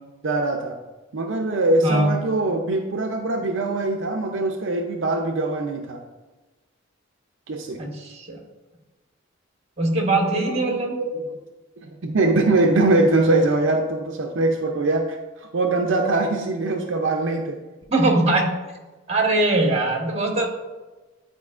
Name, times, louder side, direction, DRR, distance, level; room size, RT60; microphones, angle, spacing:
voice 1, 0.2-0.8 1.1-6.0 7.5-7.8 10.3-11.4 11.8-17.6, right 2 dB, 70° right, 2 dB, 0.6 m, -22 dB
voice 2, 7.8-8.4 9.8-11.0 17.9-18.5 19.1-20.5, right 2 dB, 35° right, 0 dB, 1.3 m, -21 dB
10.5 x 4.3 x 2.4 m, 1.2 s
head